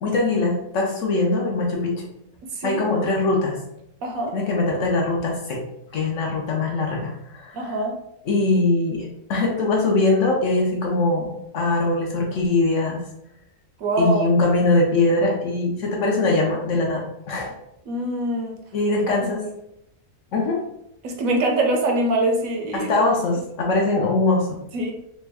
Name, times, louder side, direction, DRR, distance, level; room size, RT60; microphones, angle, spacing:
voice 1, 0.0-2.0 2.6-3.6 4.3-5.6 5.9-7.8 8.3-13.0 14.0-17.5 18.7-19.4 20.3-20.6 22.7-24.6, left 2 dB, 65° left, -1 dB, 0.9 m, -22 dB
voice 2, 2.5-2.8 4.0-4.4 7.5-8.0 13.8-14.3 17.9-18.5 21.0-23.1 24.7-24.9, right 1 dB, 70° right, 3 dB, 0.9 m, -23 dB
3.3 x 2.1 x 3.3 m, 0.80 s
omnidirectional pair, 1.6 m